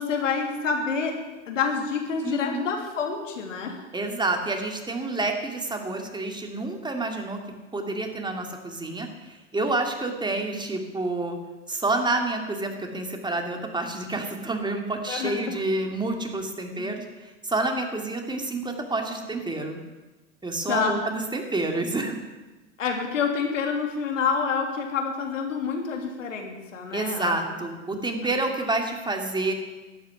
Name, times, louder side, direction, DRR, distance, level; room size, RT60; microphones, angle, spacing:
voice 1, 0.0-3.8 15.1-15.6 16.8-17.0 20.7-21.0 22.8-27.4, left 5 dB, 85° left, 3 dB, 2.9 m, -28 dB
voice 2, 2.2-2.7 3.9-7.4 7.7-11.4 11.7-19.8 20.4-22.2 26.9-29.5, right 2 dB, 10° right, 3 dB, 2.6 m, -28 dB
12.5 x 9.1 x 10.0 m, 1.2 s
hypercardioid pair, 100°, 37 cm